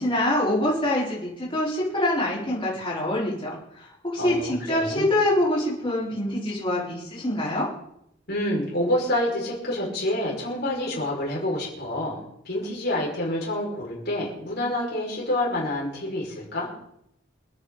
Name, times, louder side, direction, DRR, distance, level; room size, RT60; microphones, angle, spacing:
voice 1, 0.0-7.7, left 1 dB, 25° left, -7 dB, 5.0 m, -25 dB
voice 2, 4.2-5.1 8.3-16.7, left 1 dB, 55° left, -3 dB, 6.1 m, -28 dB
27.5 x 9.8 x 4.2 m, 0.77 s
head